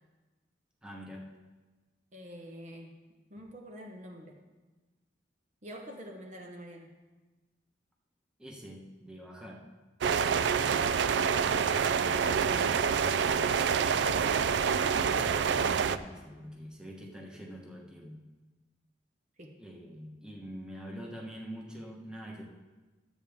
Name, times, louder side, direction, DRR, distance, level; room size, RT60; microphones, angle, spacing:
voice 1, 0.8-1.3 8.4-9.6 14.9-18.2 19.6-22.4, equal, 5° right, -1 dB, 1.2 m, -45 dB
voice 2, 2.1-3.0 3.3-4.4 5.6-6.9 12.0-12.9 19.4-19.6, equal, 45° right, 1 dB, 1.0 m, -46 dB
sound 1, 10.0-16.0, right 6 dB, 80° right, 0.4 m, -27 dB
12.5 x 8.0 x 3.5 m, 1.2 s
head